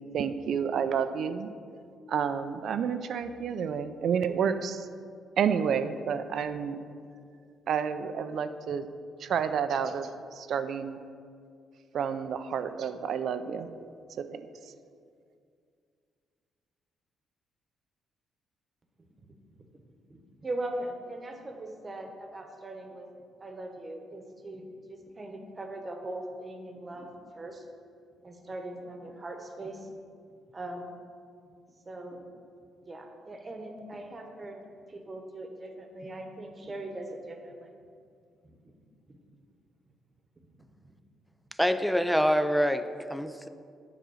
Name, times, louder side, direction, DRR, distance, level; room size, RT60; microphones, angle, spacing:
voice 1, 0.0-1.5 2.1-4.9 5.4-6.8 7.7-8.9 9.2-11.0 11.9-13.7 14.2-14.4, right 7 dB, 65° right, 10 dB, 0.4 m, -30 dB
voice 2, 20.1-23.1 23.4-27.1 27.4-27.6 28.2-29.9 30.5-31.0 31.8-32.3 32.8-34.6 34.9-37.7 38.6-38.7 39.1-39.2 40.6-40.9, right 1 dB, 30° right, 4 dB, 1.1 m, -40 dB
voice 3, 41.6-43.5, equal, ahead, 10 dB, 0.4 m, -26 dB
9.1 x 3.9 x 6.3 m, 2.3 s
cardioid pair, 90°, 0 cm